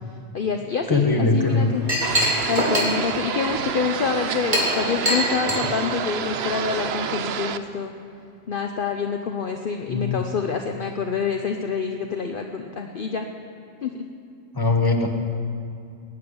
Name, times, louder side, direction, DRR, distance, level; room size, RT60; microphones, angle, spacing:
voice 1, 0.3-1.8 2.5-7.9 8.5-13.3 13.8-13.9, left 6 dB, 50° left, 4 dB, 0.9 m, -27 dB
voice 2, 0.9-1.7 9.9-10.2 14.5-15.1, left 3 dB, 20° left, 2 dB, 1.4 m, -20 dB
Chink clink, 1.4-6.7, equal, 40° right, 3.2 m, -26 dB
sound 1, 2.0-7.6, right 8 dB, 65° right, 0.9 m, -29 dB
19.0 x 7.8 x 9.7 m, 2.5 s
omnidirectional pair, 1.2 m